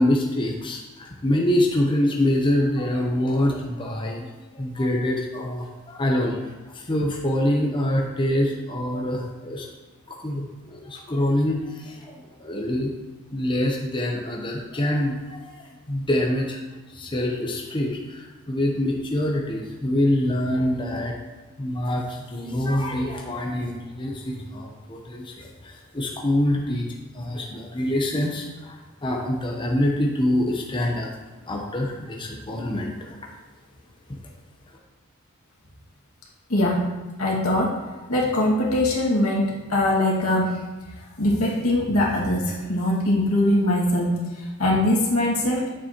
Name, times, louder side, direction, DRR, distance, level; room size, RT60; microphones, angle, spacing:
voice 1, 0.0-9.7 10.1-12.9 13.3-16.6 16.9-26.9 27.1-31.1 31.4-33.2, left 1 dB, 20° left, -1 dB, 0.8 m, -25 dB
voice 2, 36.5-36.8 37.2-37.8 38.1-40.6 41.2-44.1 44.6-45.7, left 1 dB, 85° left, -4 dB, 2.0 m, -22 dB
8.8 x 7.1 x 3.0 m, 1.2 s
head